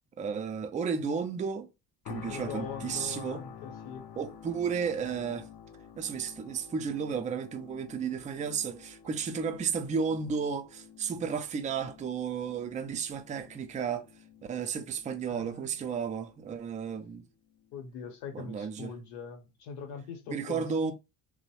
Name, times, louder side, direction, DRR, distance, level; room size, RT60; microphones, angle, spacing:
voice 1, 0.2-1.7 2.1-3.4 4.2-5.5 6.0-14.1 14.4-17.2 18.3-18.9 20.3-20.9, right 6 dB, 20° right, 0.4 m, -33 dB
sound 1, 2.0-17.1 17.5-17.7, left 8 dB, 55° left, 0.6 m, -49 dB
voice 2, 2.2-4.0 15.2-15.7 17.7-20.9, left 6 dB, 70° left, 0.9 m, -42 dB
2.9 x 2.1 x 2.7 m
hypercardioid pair, 55°, 46 cm